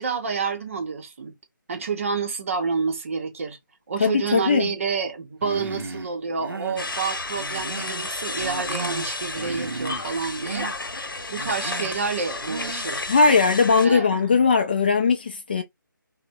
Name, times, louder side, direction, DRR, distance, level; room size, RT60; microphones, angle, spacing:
voice 1, 0.0-1.3 1.7-3.6 3.9-11.0 11.3-13.2 13.8-14.1, right 5 dB, 40° right, 0.6 m, -29 dB
voice 2, 4.0-4.7 13.1-15.6, left 5 dB, 25° left, 0.3 m, -19 dB
Human voice, 5.4-6.1 6.4-6.9 7.3-8.1 8.4-9.1 9.4-10.1 10.4-10.7 11.3-11.9 12.4-12.9, right 3 dB, 80° right, 0.6 m, -35 dB
sound 1, 6.8-13.9, left 3 dB, 75° left, 0.8 m, -32 dB
3.3 x 2.0 x 2.6 m
figure-of-eight pair, 155°, 11 cm